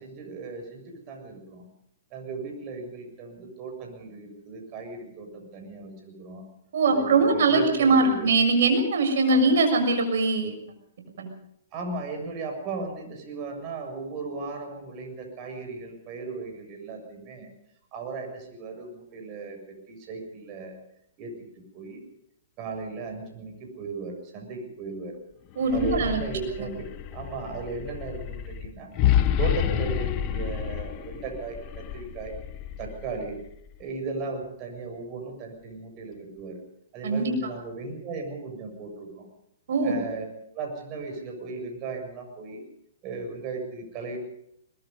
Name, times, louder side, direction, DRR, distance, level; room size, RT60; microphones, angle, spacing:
voice 1, 0.0-1.6 2.1-6.5 6.8-8.3 9.3-9.4 11.7-17.5 17.9-20.8 21.2-22.0 22.6-25.2 25.7-28.9 29.4-32.3 32.8-33.4 33.8-36.6 36.9-39.3 39.8-40.3 40.5-42.6 43.0-44.2, right 4 dB, 35° right, 3 dB, 7.2 m, -36 dB
voice 2, 6.7-10.5 11.2-11.3 25.6-26.2 37.0-37.3 39.7-39.9, right 3 dB, 70° right, 5 dB, 6.7 m, -22 dB
sound 1, 25.5-33.7, left 10 dB, 35° left, 1.5 m, -29 dB
22.5 x 21.5 x 5.5 m, 0.74 s
hypercardioid pair, 135°, 0 cm